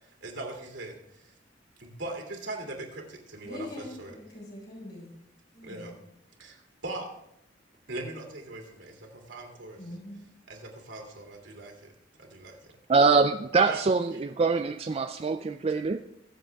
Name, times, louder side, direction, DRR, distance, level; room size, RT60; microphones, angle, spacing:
voice 1, 0.2-1.0 1.8-4.1 5.6-5.9 6.4-6.6 6.8-7.1 7.9-9.8 10.5-11.9 12.2-12.6 13.5-13.8, right 2 dB, 70° right, 1 dB, 2.9 m, -39 dB
voice 2, 3.4-5.1 5.5-6.0 9.8-10.2, left 1 dB, 60° left, -5 dB, 4.2 m, -42 dB
voice 3, 12.9-16.0, right 4 dB, 35° right, 8 dB, 0.4 m, -24 dB
22.5 x 7.6 x 3.5 m, 0.83 s
head